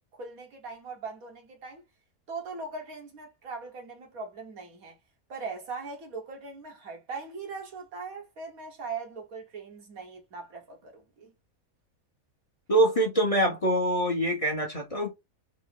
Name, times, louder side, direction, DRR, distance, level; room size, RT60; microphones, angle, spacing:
voice 1, 0.1-1.8 2.3-5.0 5.3-11.3, right 4 dB, 80° right, 1.6 m, -40 dB
voice 2, 12.7-15.1, right 1 dB, 30° left, 0.8 m, -24 dB
3.9 x 2.0 x 3.6 m
omnidirectional pair, 1.4 m